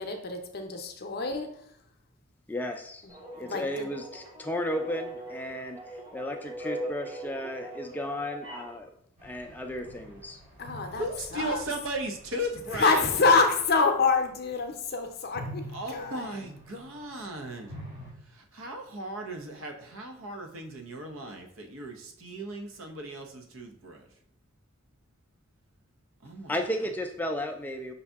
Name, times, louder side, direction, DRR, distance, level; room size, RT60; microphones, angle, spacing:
voice 1, 0.0-1.6 3.4-3.9 10.6-11.1 11.3-11.6 12.7-15.6 15.9-16.3, left 4 dB, 50° left, 5 dB, 0.6 m, -26 dB
voice 2, 2.5-5.8 6.1-8.9 9.2-10.4 26.5-27.9, left 1 dB, 10° left, 4 dB, 0.3 m, -34 dB
sound 1, 3.1-8.8, right 1 dB, 20° right, 0.9 m, -40 dB
sound 2, 9.2-14.8 15.2-18.1, equal, 40° right, 1.2 m, -46 dB
voice 3, 10.9-13.1 15.7-17.8 18.2-24.1 26.2-26.6, right 1 dB, 80° right, 4 dB, 0.7 m, -37 dB
5.5 x 2.7 x 3.4 m, 0.68 s
head